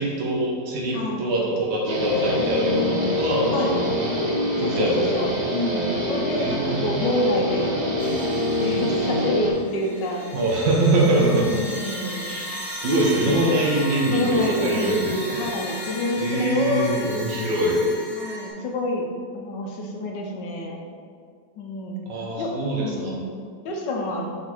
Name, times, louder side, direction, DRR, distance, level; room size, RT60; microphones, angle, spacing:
voice 1, 0.0-3.8 4.6-5.3 6.4-7.0 10.3-11.5 12.2-15.5 16.2-17.8 22.1-23.2, right 1 dB, 80° right, -3 dB, 1.8 m, -23 dB
voice 2, 0.9-1.3 3.5-3.8 4.6-7.7 8.6-10.3 11.2-12.4 14.1-17.2 18.1-19.1 19.3-20.8 21.6-22.0 22.4-22.5 22.8-23.2 23.6-24.3, left 1 dB, 80° left, 1 dB, 1.5 m, -27 dB
Guitar, 1.8-9.5, left 1 dB, 30° right, 0.9 m, -25 dB
sound 1, 8.0-9.2 9.6-18.5, equal, 15° left, 1.3 m, -35 dB
5.5 x 4.1 x 4.4 m, 2.1 s
omnidirectional pair, 1.9 m